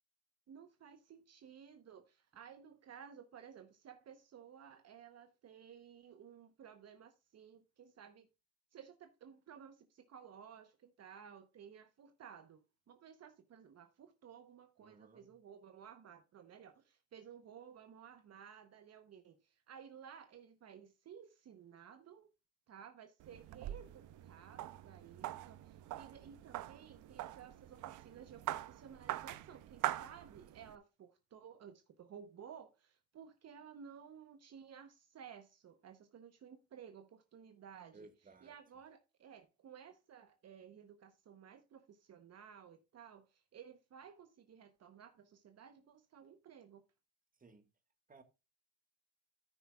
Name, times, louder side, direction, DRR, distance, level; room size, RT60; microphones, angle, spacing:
voice 1, 0.5-8.3 8.7-22.3 22.7-38.1 38.4-46.8, right 8 dB, 55° right, 1.0 m, -56 dB
voice 2, 14.8-15.3 37.9-38.6 47.4-47.7 48.1-48.2, right 3 dB, 30° right, 1.5 m, -60 dB
sound 1, 23.2-30.8, right 14 dB, 85° right, 0.6 m, -44 dB
14.0 x 5.9 x 2.3 m
cardioid pair, 90°, 30 cm